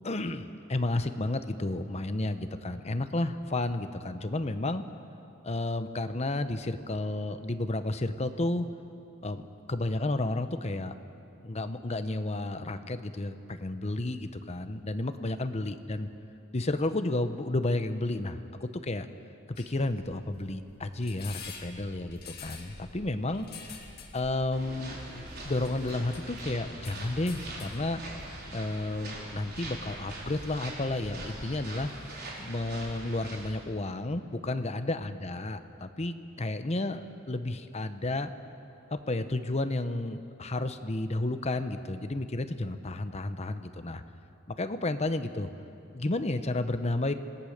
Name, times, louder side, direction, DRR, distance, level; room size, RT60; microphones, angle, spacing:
voice 1, 0.0-4.8 5.4-8.7 9.2-9.4 9.7-10.9 11.4-16.1 16.5-19.1 19.5-23.5 24.1-28.0 28.5-31.9 32.4-38.3 38.9-44.0 44.6-45.5 45.9-47.1, left 2 dB, 30° left, 9 dB, 0.9 m, -32 dB
sound 1, 19.6-31.6, left 4 dB, 50° left, 2.2 m, -49 dB
sound 2, 24.5-33.5, right 1 dB, 50° right, 4.5 m, -43 dB
26.5 x 17.5 x 6.7 m, 2.7 s
head